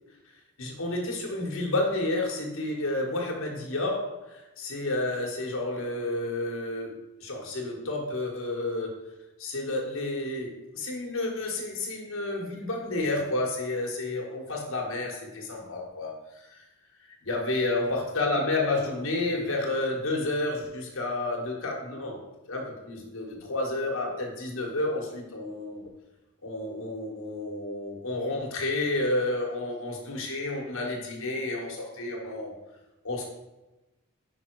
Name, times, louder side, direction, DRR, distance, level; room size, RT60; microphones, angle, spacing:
voice 1, 0.6-9.0 9.4-16.6 17.2-22.2 22.5-25.8 26.4-32.5 33.0-33.2, left 2 dB, 80° left, 0 dB, 1.6 m, -30 dB
5.8 x 4.8 x 4.7 m, 1.0 s
head